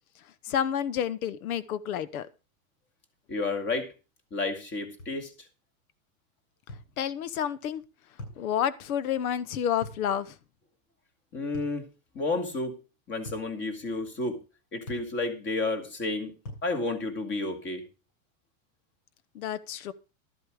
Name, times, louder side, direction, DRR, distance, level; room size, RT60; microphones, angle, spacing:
voice 1, 0.4-2.3 7.0-7.8 8.4-10.4 19.3-19.9, left 9 dB, 90° left, 18 dB, 1.0 m, -29 dB
voice 2, 3.3-3.9 4.3-5.3 11.3-11.8 12.1-12.8 13.1-14.4 14.7-16.3 16.6-17.8, left 3 dB, 25° left, 8 dB, 2.3 m, -31 dB
sound 1, 5.0-5.2 6.7-6.9 8.2-8.4 9.8-10.1 11.5-11.8 13.3-13.5 14.9-15.1 16.5-16.7, left 1 dB, 75° left, 7.8 m, -42 dB
13.0 x 8.1 x 4.9 m, 0.31 s
supercardioid pair, 150°, 42 cm